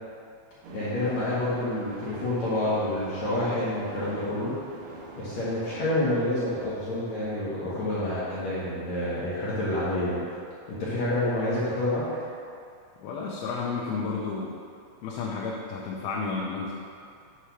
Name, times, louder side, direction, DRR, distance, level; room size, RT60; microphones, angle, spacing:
sound 1, 0.6-5.8, right 2 dB, 85° right, 1.6 m, -43 dB
voice 1, 0.7-4.5 5.2-10.3 10.7-12.0, left 1 dB, 65° left, -9 dB, 1.9 m, -28 dB
voice 2, 13.0-14.5 15.0-16.7, left 4 dB, 85° left, -3 dB, 2.6 m, -32 dB
7.8 x 3.2 x 5.7 m, 2.4 s
omnidirectional pair, 4.3 m